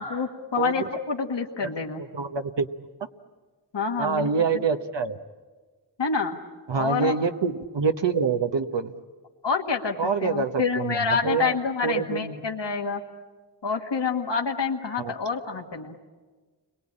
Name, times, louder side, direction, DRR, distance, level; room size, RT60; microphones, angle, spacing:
voice 1, 0.0-2.0 3.7-4.3 6.0-6.4 6.7-7.1 9.4-10.0 10.2-13.0 13.6-16.0, left 5 dB, 85° left, 2 dB, 1.8 m, -27 dB
voice 2, 0.6-0.9 1.6-1.7 2.0-2.7 4.0-5.2 6.7-8.9 10.0-11.6 11.8-12.3 15.0-15.1, right 5 dB, 85° right, 6 dB, 1.1 m, -26 dB
30.0 x 22.5 x 8.7 m, 1.4 s
wide cardioid pair, 80°, 42 cm